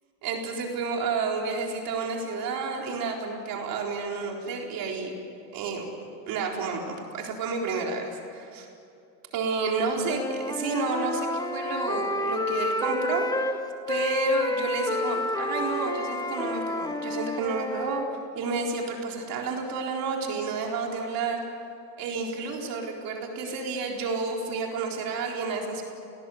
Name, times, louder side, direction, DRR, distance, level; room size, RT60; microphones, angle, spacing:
voice 1, 0.2-5.1 5.5-5.9 6.3-8.7 9.3-13.5 13.9-18.0 18.3-21.4 22.0-25.8, right 4 dB, 45° right, 1 dB, 4.1 m, -30 dB
Wind instrument woodwind instrument, 10.0-13.6 13.9-18.1, left 2 dB, 10° left, 1.5 m, -29 dB
28.5 x 19.0 x 7.8 m, 2.5 s
supercardioid pair, 115°, 49 cm